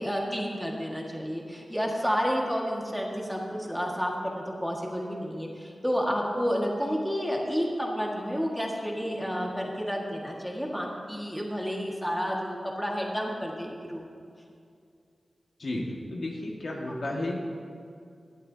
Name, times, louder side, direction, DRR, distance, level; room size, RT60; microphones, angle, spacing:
voice 1, 0.0-14.2 16.9-17.2, equal, ahead, -2 dB, 1.8 m, -30 dB
voice 2, 15.6-17.4, left 1 dB, 65° left, -1 dB, 1.8 m, -33 dB
18.5 x 11.0 x 2.8 m, 2.3 s
wide cardioid pair, 80°, 0 cm